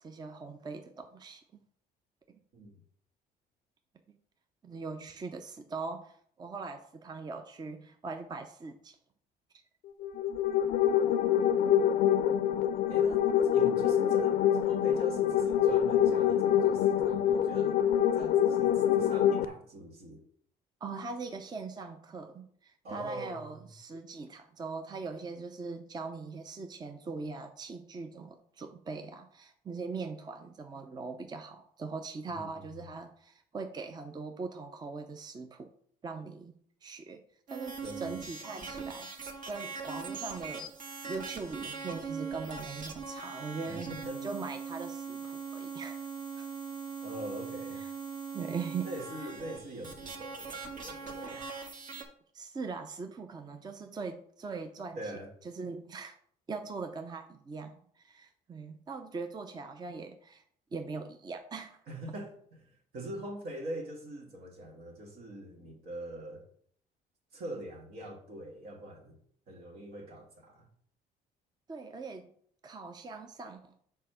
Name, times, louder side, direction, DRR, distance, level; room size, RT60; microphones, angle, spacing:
voice 1, 0.0-1.4 2.3-2.4 4.6-9.0 20.8-35.7 36.0-36.5 36.8-37.2 37.5-40.7 41.1-43.9 44.2-46.0 46.4-46.5 47.7-47.9 48.3-48.9 51.2-51.7 52.3-55.1 55.4-56.1 56.5-60.4 60.7-61.8 71.7-72.3 72.6-73.7, right 4 dB, 25° right, 0.5 m, -41 dB
sound 1, 10.0-19.4, left 10 dB, 60° left, 0.4 m, -26 dB
voice 2, 12.9-13.3 13.5-17.8 18.1-20.2 22.8-23.7 32.3-32.6 37.8-38.1 43.7-44.3 47.0-47.8 48.9-51.5 55.0-55.3 61.9-66.5 67.3-69.2 69.5-70.7, right 1 dB, 70° right, 1.8 m, -43 dB
sound 2, 37.5-52.0, right 5 dB, 50° right, 1.3 m, -41 dB
5.5 x 4.3 x 5.7 m
cardioid pair, 110°, 17 cm